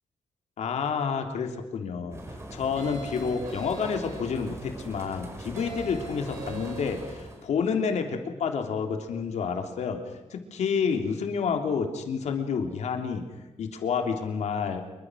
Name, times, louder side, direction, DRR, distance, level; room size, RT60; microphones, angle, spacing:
voice 1, 0.6-2.2 2.5-10.0 10.3-13.2 13.6-14.9, left 6 dB, 70° left, 5 dB, 3.4 m, -29 dB
sound 1, 2.1-7.5, right 1 dB, 25° right, 4.8 m, -41 dB
sound 2, 2.8-4.5 5.6-7.3, right 2 dB, 85° right, 7.1 m, -42 dB
27.0 x 24.0 x 6.4 m, 1.0 s
wide cardioid pair, 155°, 12 cm